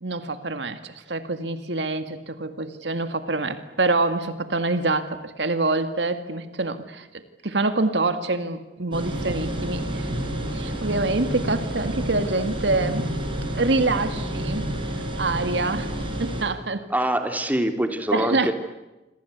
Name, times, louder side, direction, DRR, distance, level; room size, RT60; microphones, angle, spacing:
voice 1, 0.0-10.1 10.5-13.1 13.6-14.7 15.2-16.9 18.1-18.5, right 2 dB, 80° right, 9 dB, 2.1 m, -26 dB
sound 1, 8.9-16.4, right 1 dB, 30° right, 6.6 m, -29 dB
voice 2, 16.9-18.5, right 1 dB, 10° right, 6 dB, 2.9 m, -24 dB
27.5 x 26.0 x 8.3 m, 1.0 s
head